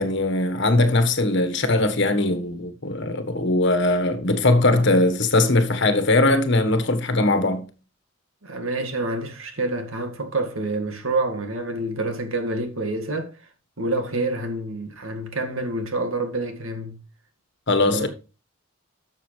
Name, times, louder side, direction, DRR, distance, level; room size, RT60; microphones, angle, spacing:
voice 1, 0.0-7.7 17.7-18.1, left 2 dB, 60° left, 1.4 m, -20 dB
voice 2, 8.4-13.3 13.8-17.0 17.9-18.1, right 2 dB, 85° right, 2.0 m, -27 dB
12.0 x 6.8 x 3.3 m
head